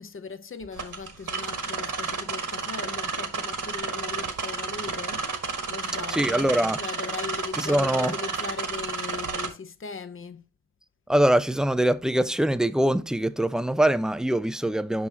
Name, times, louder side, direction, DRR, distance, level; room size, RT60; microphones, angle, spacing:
voice 1, 0.0-10.4, left 5 dB, 30° left, 0.7 m, -39 dB
sound 1, 0.7-9.5, right 4 dB, 45° right, 1.4 m, -31 dB
voice 2, 6.1-6.8 7.6-8.1 11.1-15.1, right 1 dB, ahead, 0.3 m, -23 dB
6.3 x 5.6 x 2.8 m
hypercardioid pair, 40°, 42 cm